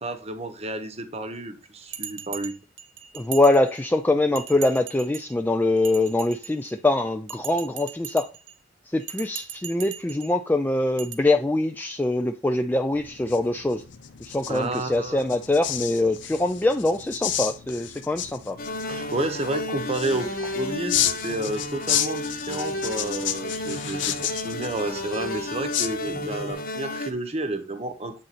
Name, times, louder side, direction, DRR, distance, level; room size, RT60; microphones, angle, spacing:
voice 1, 0.0-2.5 14.5-15.2 18.9-28.2, right 2 dB, 35° right, 0.9 m, -31 dB
Bell, 1.9-4.0 4.3-5.3 5.8-6.8 7.3-8.5 9.0-10.3 11.0-11.1, right 9 dB, 75° right, 0.7 m, -39 dB
voice 2, 3.1-8.3 8.8-13.8 14.2-18.6, left 2 dB, 10° left, 0.3 m, -23 dB
sound 1, 12.9-26.5, left 10 dB, 70° left, 0.6 m, -32 dB
sound 2, 18.6-27.1, left 1 dB, 50° left, 1.0 m, -32 dB
7.5 x 3.9 x 4.1 m
head